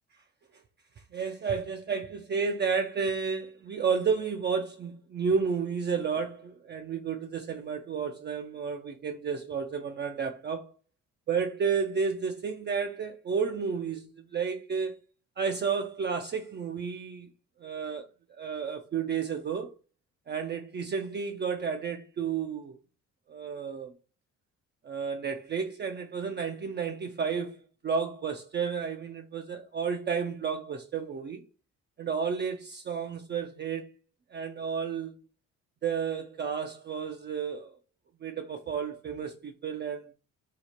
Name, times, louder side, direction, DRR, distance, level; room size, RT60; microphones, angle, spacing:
voice 1, 1.1-10.7 11.3-15.0 15.4-17.3 17.6-18.1 18.4-19.7 20.3-22.8 23.3-23.9 24.8-27.6 27.8-31.4 32.0-33.9 34.3-35.1 35.8-37.8 38.2-40.1, right 6 dB, 35° right, 0.4 m, -31 dB
2.9 x 2.4 x 4.2 m
cardioid pair, 90°, 30 cm